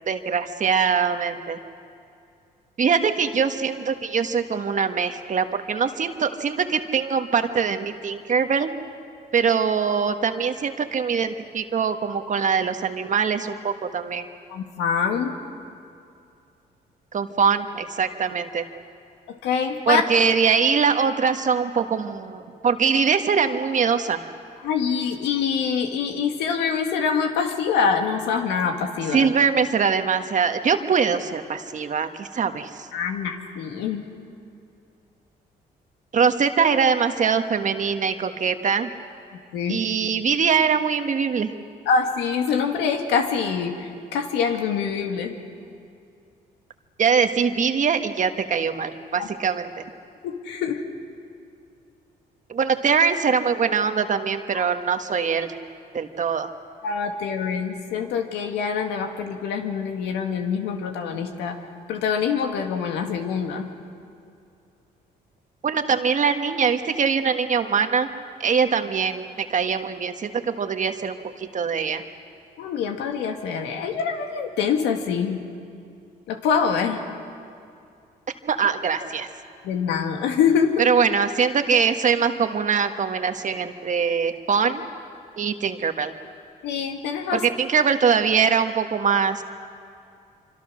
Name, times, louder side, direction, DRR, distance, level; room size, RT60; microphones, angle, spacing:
voice 1, 0.1-1.6 2.8-8.7 9.3-14.3 17.1-18.6 19.9-24.2 29.1-32.9 36.1-38.9 39.7-41.5 47.0-49.8 52.5-55.5 55.9-56.5 65.6-68.1 68.4-72.0 78.5-79.3 80.8-84.8 85.4-86.1 87.3-89.4, right 6 dB, 45° right, 7 dB, 1.6 m, -22 dB
voice 2, 14.5-15.4 19.3-20.0 24.6-29.3 32.9-34.0 39.5-39.8 41.9-45.3 49.2-49.3 50.2-50.8 54.5-54.6 56.8-61.6 61.9-63.7 72.6-75.4 76.3-77.0 79.6-80.8 86.6-87.4, left 6 dB, 85° left, 4 dB, 2.2 m, -25 dB
26.0 x 25.5 x 6.4 m, 2.5 s
cardioid pair, 80°, 17 cm